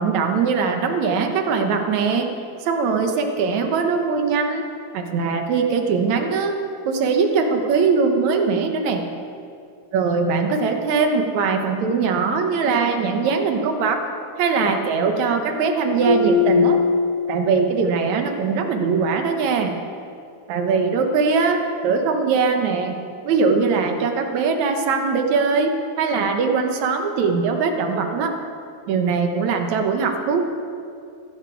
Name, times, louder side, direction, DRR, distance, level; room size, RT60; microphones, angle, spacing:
voice 1, 0.0-2.3 2.6-4.6 4.9-6.5 6.8-9.0 9.9-14.0 14.4-16.8 17.3-19.8 20.5-23.0 23.2-25.7 26.0-28.3 28.9-30.5, right 5 dB, 65° right, 5 dB, 2.2 m, -21 dB
Marimba xylophone, 16.0-17.8, left 4 dB, 20° left, 3.8 m, -20 dB
15.5 x 12.5 x 4.6 m, 2.4 s
omnidirectional pair, 3.8 m